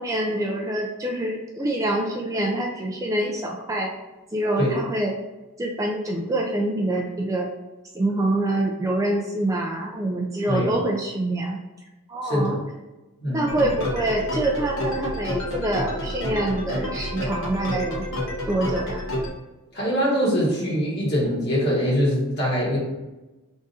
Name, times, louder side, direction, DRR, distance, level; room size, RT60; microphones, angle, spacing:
voice 1, 0.0-3.9 4.3-5.1 5.6-7.5 7.9-11.6 12.1-12.6 13.3-18.1 18.5-19.0, right 1 dB, 15° right, -1 dB, 0.3 m, -25 dB
voice 2, 12.2-12.6 13.2-13.6 19.7-22.8, equal, 50° left, -6 dB, 1.5 m, -23 dB
sound 1, 13.5-19.3, equal, 65° left, 1.0 m, -29 dB
3.5 x 2.5 x 4.1 m, 1.1 s
head